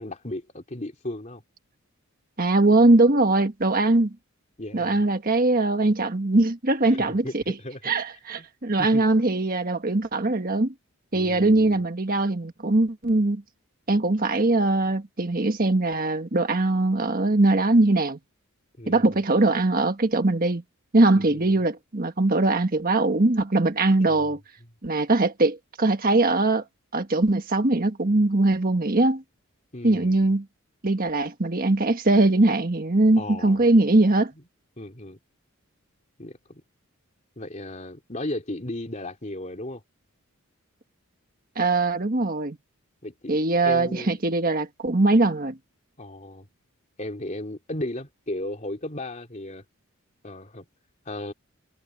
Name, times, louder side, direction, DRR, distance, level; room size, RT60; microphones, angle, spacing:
voice 1, 0.0-1.4 4.6-5.0 6.9-7.8 8.4-8.5 8.8-9.1 11.1-11.8 18.8-19.2 21.2-21.6 24.1-24.3 29.7-30.3 33.2-33.7 34.8-35.2 36.2-36.6 37.4-39.8 43.0-44.2 46.0-46.5 47.0-49.6 50.2-50.6 51.0-51.3, left 1 dB, 35° left, 3.3 m, -35 dB
voice 2, 2.4-4.1 4.7-7.5 7.8-10.7 11.1-13.4 13.9-18.2 18.9-20.6 20.9-24.4 24.8-26.6 26.9-29.2 29.8-30.4 30.8-34.3 41.5-42.6 43.3-45.6, right 2 dB, 40° right, 1.5 m, -21 dB
head